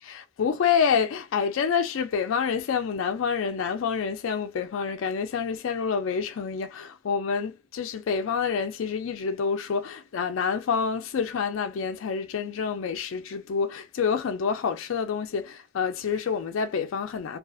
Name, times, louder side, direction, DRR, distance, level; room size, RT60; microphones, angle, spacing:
voice 1, 0.0-17.4, left 6 dB, 90° left, 0.4 m, -27 dB
2.4 x 2.4 x 2.3 m
head